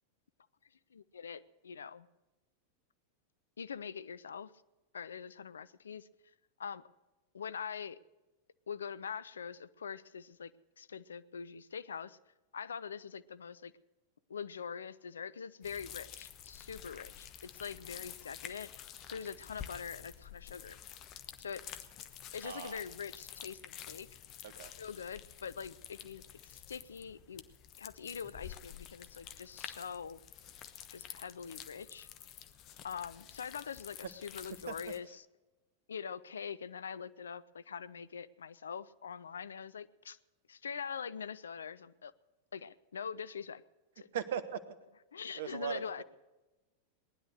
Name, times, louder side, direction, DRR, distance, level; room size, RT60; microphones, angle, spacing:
voice 1, 0.9-2.1 3.6-4.5 4.9-6.1 6.6-6.9 7.3-8.0 8.7-10.5 10.8-12.2 12.5-13.7 14.3-18.7 19.1-20.8 21.4-21.6 22.3-24.1 24.8-27.4 27.8-30.2 30.9-32.1 32.8-35.1 35.9-40.2 40.5-42.1 42.5-43.6 44.0-44.1 45.1-46.0, left 6 dB, 70° left, 16 dB, 0.5 m, -43 dB
sound 1, 15.6-35.0, left 10 dB, 35° left, 1.1 m, -50 dB
voice 2, 22.4-22.8 24.4-24.7 34.0-34.1 34.7-35.1 44.1-44.8 45.3-46.0, right 8 dB, 60° right, 14 dB, 1.1 m, -39 dB
19.0 x 11.0 x 6.5 m, 1.1 s
figure-of-eight pair, 90°, 0 cm